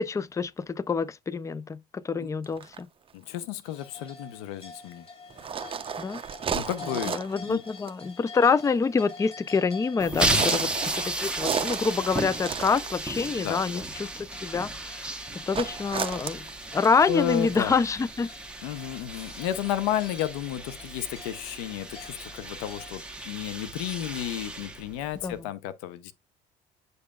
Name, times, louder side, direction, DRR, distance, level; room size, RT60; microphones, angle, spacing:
voice 1, 0.0-2.9 6.0-6.2 7.1-14.1 14.4-16.4 16.7-18.3 25.2-25.3, left 5 dB, 15° left, 0.4 m, -26 dB
sound 1, 2.4-2.8 5.3-7.4 7.8-8.0 10.2-13.3 15.5-17.0, right 7 dB, 30° right, 0.6 m, -33 dB
voice 2, 3.1-5.1 6.5-7.2 7.4-7.6 10.1-10.7 13.3-13.8 17.1-17.8 18.6-26.1, left 11 dB, 90° left, 0.7 m, -32 dB
sound 2, 3.6-23.0, left 4 dB, 35° left, 3.3 m, -48 dB
sound 3, 10.0-25.4, right 2 dB, 5° right, 1.1 m, -34 dB
8.0 x 5.4 x 2.3 m
supercardioid pair, 85°, 18 cm